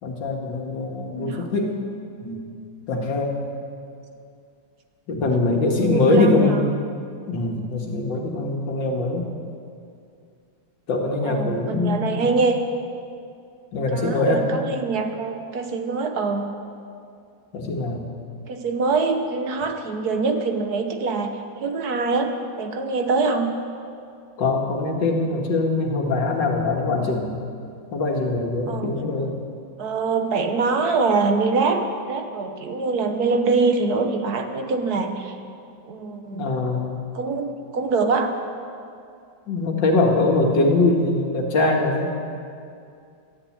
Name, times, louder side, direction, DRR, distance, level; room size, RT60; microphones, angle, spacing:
voice 1, 0.0-1.8 2.2-2.4 2.9-3.4 5.1-6.6 7.3-9.3 10.9-12.3 13.7-14.5 17.5-18.0 24.4-27.3 27.9-29.4 36.3-37.0 39.5-42.2, left 2 dB, 75° left, 1 dB, 2.3 m, -22 dB
voice 2, 1.1-1.5 5.8-6.7 11.3-12.6 13.9-16.5 18.5-21.3 21.6-23.6 28.7-29.3 29.8-35.3 35.9-36.6 37.1-38.3, right 4 dB, 60° right, 5 dB, 1.4 m, -24 dB
13.0 x 10.5 x 8.6 m, 2.4 s
omnidirectional pair, 2.0 m